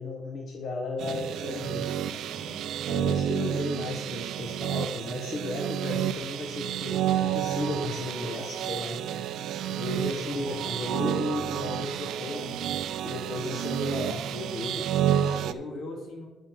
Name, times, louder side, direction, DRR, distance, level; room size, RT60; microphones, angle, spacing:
voice 1, 0.0-2.3 2.9-12.6 13.0-15.2, left 3 dB, 60° left, 1 dB, 1.3 m, -35 dB
sound 1, 1.0-15.5, right 10 dB, 80° right, 0.5 m, -30 dB
voice 2, 2.2-2.7 10.1-11.2 15.2-16.3, left 2 dB, 75° left, -1 dB, 3.3 m, -41 dB
13.0 x 4.5 x 6.3 m, 1.1 s
cardioid pair, 90°, 0 cm